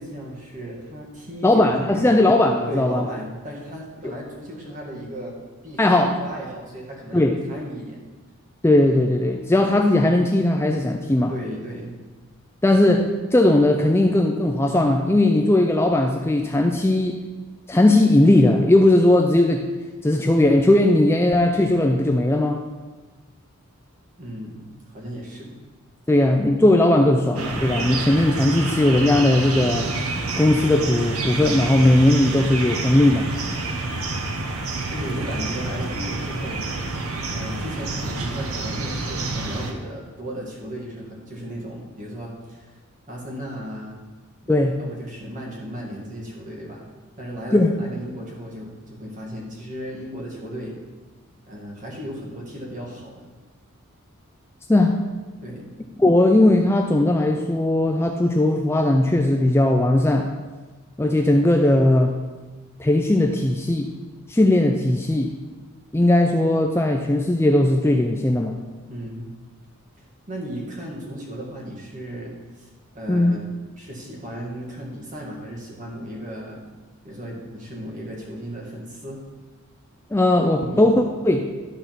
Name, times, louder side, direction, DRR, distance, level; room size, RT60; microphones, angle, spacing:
voice 1, 0.0-1.6 1.9-2.2 2.7-5.3 5.6-8.0 11.3-11.9 24.2-25.5 33.8-34.2 34.7-36.7 37.3-42.7 43.1-44.0 44.4-46.8 47.2-50.8 51.5-53.3 55.4-55.7 68.9-69.3 70.0-72.7 72.9-76.6 77.0-79.2 80.6-80.9, equal, 35° right, -3 dB, 2.0 m, -35 dB
voice 2, 1.4-3.0 5.8-6.1 7.1-7.4 8.6-11.3 12.6-17.2 17.7-19.6 20.0-22.6 26.1-29.9 30.4-33.3 44.5-44.8 47.5-47.7 54.7-55.0 56.0-60.3 61.0-62.1 62.8-63.9 64.3-65.3 65.9-68.6 73.1-73.4 80.1-81.4, left 1 dB, 10° left, 3 dB, 0.4 m, -18 dB
sound 1, 27.4-39.7, right 2 dB, 75° right, 1.0 m, -28 dB
12.0 x 4.1 x 5.9 m, 1.3 s
head